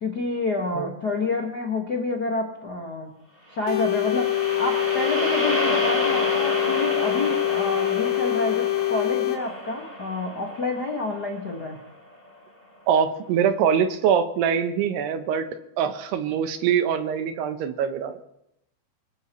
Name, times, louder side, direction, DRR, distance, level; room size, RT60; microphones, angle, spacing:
voice 1, 0.0-3.1 3.5-11.8, left 2 dB, 55° left, 0 dB, 1.0 m, -29 dB
sound 1, 3.6-11.9, equal, 15° right, 2.4 m, -30 dB
sound 2, 3.7-9.4, left 16 dB, 85° left, 3.7 m, -25 dB
voice 2, 12.9-15.5 15.8-18.2, right 8 dB, 75° right, 9 dB, 2.9 m, -23 dB
25.0 x 15.5 x 3.1 m, 0.81 s
omnidirectional pair, 4.9 m